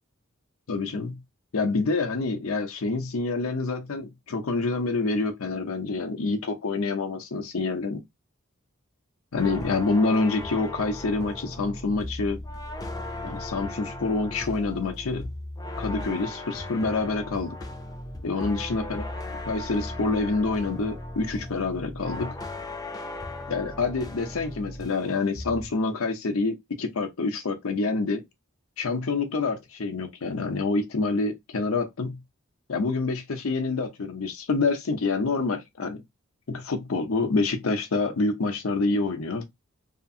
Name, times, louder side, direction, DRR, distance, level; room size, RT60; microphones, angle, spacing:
voice 1, 0.7-1.2 1.5-8.0 9.3-12.4 13.2-15.3 15.8-17.6 18.2-19.0 19.5-22.3 23.5-28.2 28.8-32.2 32.7-36.0 36.5-39.5, left 3 dB, 90° left, 0.7 m, -27 dB
sound 1, 9.4-25.1 25.3-25.8, left 1 dB, 20° left, 0.5 m, -37 dB
2.8 x 2.5 x 2.7 m
head